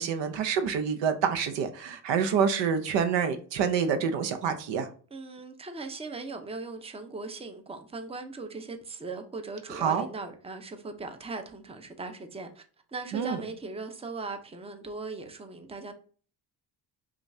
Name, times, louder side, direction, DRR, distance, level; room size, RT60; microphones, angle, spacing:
voice 1, 0.0-4.9 9.7-10.1 13.1-13.4, right 7 dB, 80° right, 0.7 m, -27 dB
voice 2, 5.1-12.6 12.9-15.9, right 3 dB, 15° right, 0.6 m, -39 dB
5.1 x 2.4 x 2.7 m
cardioid pair, 80°, 43 cm